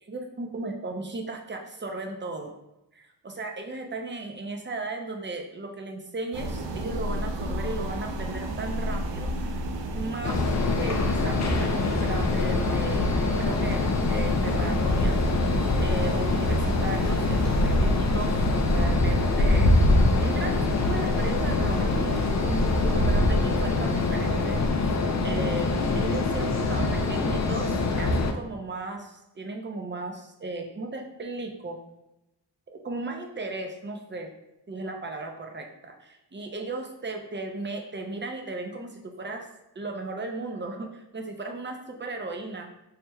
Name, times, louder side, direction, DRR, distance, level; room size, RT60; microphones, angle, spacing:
voice 1, 0.0-2.5 2.9-9.6 9.9-13.1 13.4-15.4 15.8-19.8 20.2-25.0 25.2-31.8 32.7-34.3 34.7-39.5 39.7-42.7, right 2 dB, 25° right, 3 dB, 0.6 m, -36 dB
sound 1, 6.3-24.7, equal, 85° right, 0.6 m, -32 dB
sound 2, 10.2-28.3, left 2 dB, 40° left, 0.5 m, -24 dB
4.9 x 2.9 x 2.3 m, 0.92 s
cardioid pair, 65°, 43 cm